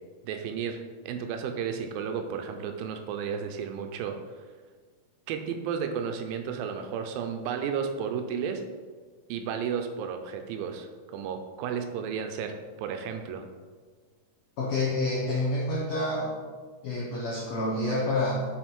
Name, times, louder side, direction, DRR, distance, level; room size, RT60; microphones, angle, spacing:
voice 1, 0.2-4.2 5.3-8.6 9.3-13.4, right 7 dB, 80° right, 6 dB, 2.2 m, -33 dB
voice 2, 14.6-16.4 16.8-18.5, left 2 dB, 85° left, -3 dB, 1.5 m, -28 dB
5.8 x 5.0 x 4.3 m, 1.5 s
omnidirectional pair, 4.3 m